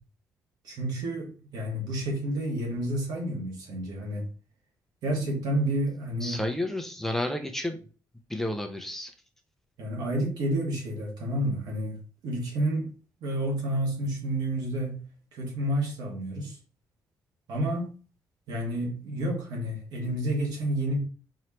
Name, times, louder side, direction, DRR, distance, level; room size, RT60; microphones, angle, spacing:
voice 1, 0.6-4.3 5.0-6.4 9.8-12.0 12.2-12.9 13.2-16.6 17.5-18.0 18.5-21.0, right 1 dB, 85° right, 1.8 m, -30 dB
voice 2, 6.2-7.8 8.3-9.1, left 1 dB, 5° left, 0.5 m, -31 dB
4.6 x 3.0 x 2.9 m
cardioid pair, 140°, 7 cm